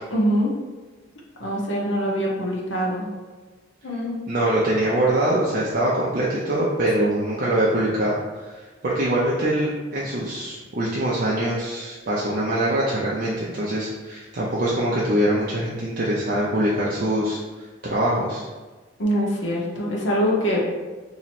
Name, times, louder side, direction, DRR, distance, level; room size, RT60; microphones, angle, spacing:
voice 1, 0.1-0.5 1.4-3.1 3.8-4.2 7.0-7.1 19.0-20.6, equal, 75° left, -3 dB, 0.8 m, -23 dB
voice 2, 4.3-8.2 8.4-18.5, right 1 dB, 50° right, -6 dB, 0.5 m, -23 dB
3.0 x 2.9 x 4.2 m, 1.3 s
head